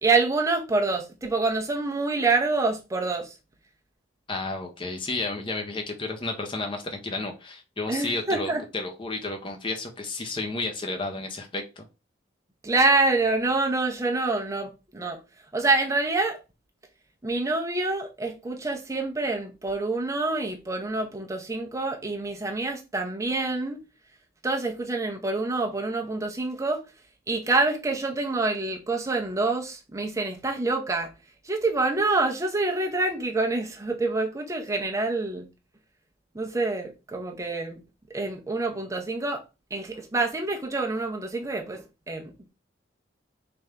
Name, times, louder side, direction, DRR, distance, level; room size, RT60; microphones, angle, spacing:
voice 1, 0.0-3.3 7.9-8.6 12.6-15.2 15.5-16.4 17.2-23.8 24.4-26.8 27.3-31.1 31.4-35.5 36.3-37.8 38.1-39.4 39.7-42.5, right 3 dB, 15° right, 0.6 m, -26 dB
voice 2, 4.3-11.8, left 2 dB, 25° left, 0.6 m, -32 dB
3.4 x 2.5 x 4.4 m
head